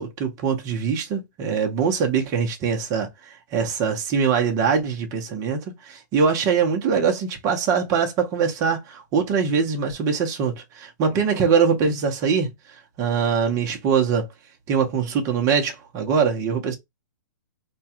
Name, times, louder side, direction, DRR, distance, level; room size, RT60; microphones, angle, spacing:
voice 1, 0.0-5.6 5.8-12.5 13.0-14.3 14.7-16.8, right 6 dB, 30° right, 0.9 m, -22 dB
3.0 x 2.3 x 2.8 m
hypercardioid pair, 130°, 10 cm